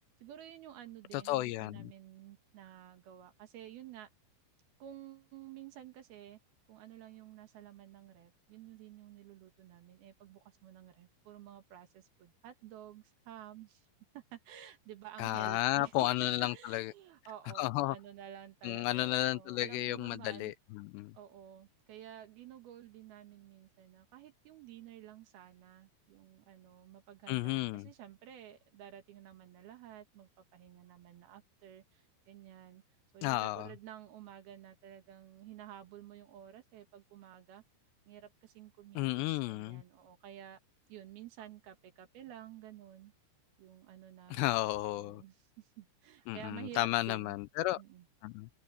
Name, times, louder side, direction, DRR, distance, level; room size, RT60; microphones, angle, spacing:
voice 1, 0.2-4.1 4.8-6.4 6.7-13.9 14.1-20.5 21.1-32.8 33.1-37.6 38.1-40.6 40.9-43.1 43.6-47.4 47.8-48.1, right 11 dB, 65° right, 3.0 m, -52 dB
voice 2, 1.1-1.9 15.2-16.9 17.6-18.0 18.6-21.1 27.3-27.9 33.2-33.7 39.0-39.8 44.3-45.2 46.3-47.8 48.2-48.5, left 17 dB, 85° left, 2.6 m, -33 dB
omnidirectional pair, 5.3 m